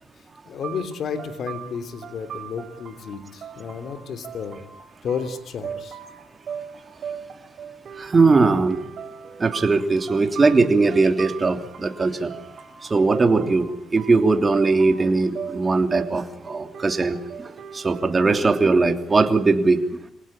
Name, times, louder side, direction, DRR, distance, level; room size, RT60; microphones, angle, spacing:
voice 1, 0.4-4.6 5.0-6.0, left 6 dB, 60° left, 10 dB, 3.3 m, -32 dB
sound 1, 0.6-18.4, right 7 dB, 60° right, 3.7 m, -39 dB
voice 2, 8.0-8.8 9.4-12.3 12.8-19.8, right 3 dB, 30° right, 6 dB, 3.0 m, -20 dB
25.5 x 18.5 x 10.0 m, 0.76 s
cardioid pair, 90°, 0 cm